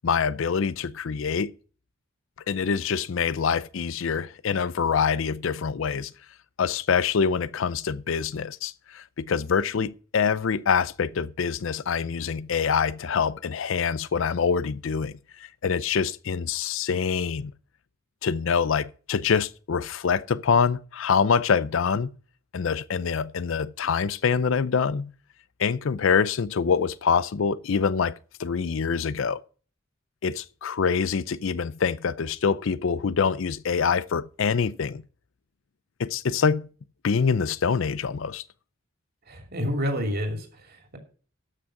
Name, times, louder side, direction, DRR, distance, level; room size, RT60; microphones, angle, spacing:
voice 1, 0.0-1.5 2.5-6.1 6.6-15.2 15.6-17.5 18.2-22.1 22.5-25.1 25.6-29.4 30.2-35.0 36.0-36.7 37.0-38.4, left 6 dB, 70° left, 0.5 m, -25 dB
voice 2, 39.3-41.0, equal, 45° right, 2.8 m, -29 dB
13.0 x 6.4 x 5.8 m
head